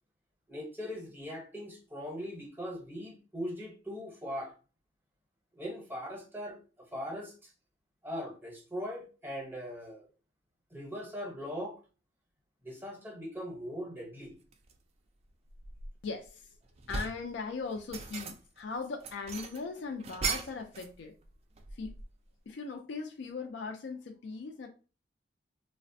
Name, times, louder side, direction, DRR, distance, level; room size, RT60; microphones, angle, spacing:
voice 1, 0.5-4.5 5.5-7.5 8.0-10.1 10.7-11.8 12.6-14.3, equal, 10° right, 0.7 m, -40 dB
sound 1, 14.5-14.8 15.3-16.3 16.6-17.3 17.7-18.6 19.0-21.0 21.2-22.2, right 4 dB, 35° right, 0.3 m, -38 dB
voice 2, 16.0-16.5 16.9-21.1 21.7-21.9 22.5-24.7, left 4 dB, 65° left, 0.4 m, -39 dB
3.2 x 2.1 x 2.5 m
head